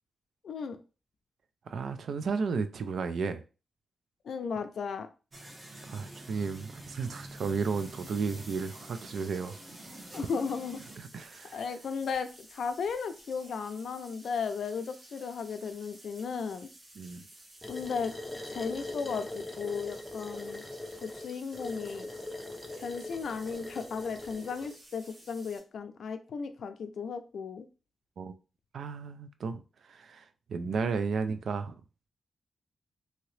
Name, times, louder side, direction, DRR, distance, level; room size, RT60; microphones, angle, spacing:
voice 1, 0.4-0.8 4.3-5.1 10.1-10.8 11.5-16.7 17.7-18.1 18.5-20.6 21.0-22.1 22.8-27.7, left 5 dB, 70° left, 0.4 m, -35 dB
voice 2, 1.7-3.4 5.9-9.6 11.1-11.6 17.0-17.2 28.2-28.3 28.7-29.6 29.9-30.2 30.5-31.7, right 5 dB, 65° right, 0.3 m, -33 dB
sound 1, 5.3-11.0, right 1 dB, 30° right, 0.8 m, -47 dB
sound 2, 7.3-25.6, right 1 dB, 85° right, 1.3 m, -54 dB
sound 3, 17.6-24.7, left 2 dB, 10° left, 0.5 m, -41 dB
2.8 x 2.8 x 3.1 m
wide cardioid pair, 160°, 0 cm